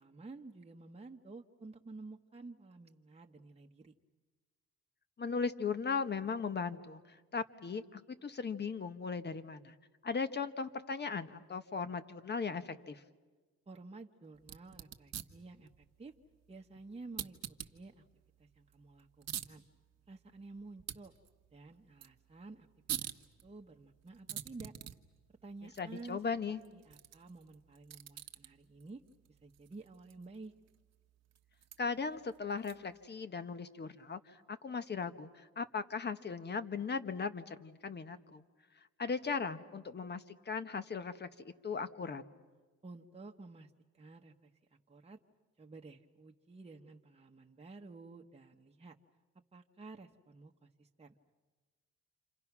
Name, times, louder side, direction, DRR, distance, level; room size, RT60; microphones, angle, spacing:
voice 1, 0.0-3.9 13.7-16.1 16.5-17.4 17.7-18.0 18.4-19.6 20.1-21.1 21.5-22.7 23.0-23.1 23.4-24.7 25.4-26.2 26.7-29.0 29.4-30.5 42.8-44.5 44.9-45.2 45.6-49.0 49.5-51.2, right 3 dB, 20° right, 1 dB, 1.2 m, -51 dB
voice 2, 5.2-9.7 10.0-13.0 25.8-26.6 31.8-34.2 34.5-38.4 39.0-41.3 41.6-42.2, left 5 dB, 35° left, 11 dB, 1.4 m, -38 dB
sound 1, 14.4-33.0, right 10 dB, 60° right, 1.3 m, -49 dB
29.5 x 27.0 x 6.1 m, 1.3 s
cardioid pair, 90°, 30 cm